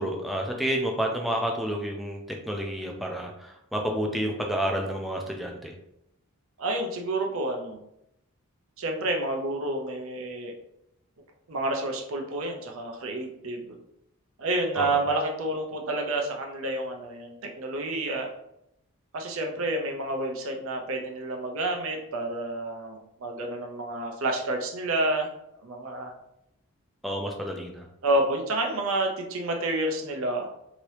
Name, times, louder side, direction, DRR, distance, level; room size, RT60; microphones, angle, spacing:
voice 1, 0.0-5.7 14.8-15.0 27.0-27.9, equal, ahead, 0 dB, 0.4 m, -30 dB
voice 2, 6.6-7.8 8.8-10.5 11.5-13.8 14.4-18.3 19.1-25.3 25.6-26.1 28.0-30.5, right 2 dB, 70° right, 2 dB, 0.6 m, -29 dB
2.9 x 2.8 x 3.1 m, 0.81 s
head